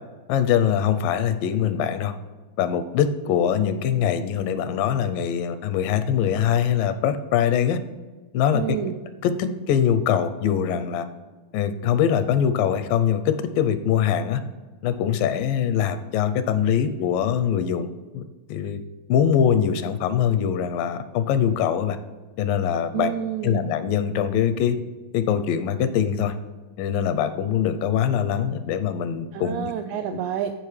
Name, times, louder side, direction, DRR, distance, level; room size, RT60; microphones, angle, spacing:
voice 1, 0.3-2.1 2.6-7.8 8.3-8.9 9.2-11.0 11.5-14.4 14.8-17.9 18.1-18.2 18.5-18.8 19.1-22.0 22.4-23.1 23.4-24.8 25.1-26.3 26.8-29.7 30.1-30.2, left 8 dB, 85° left, 11 dB, 2.3 m, -23 dB
voice 2, 8.5-9.0 22.9-23.6 29.3-30.5, right 11 dB, 85° right, 7 dB, 1.7 m, -28 dB
15.0 x 5.1 x 3.2 m, 1.3 s
omnidirectional pair, 3.9 m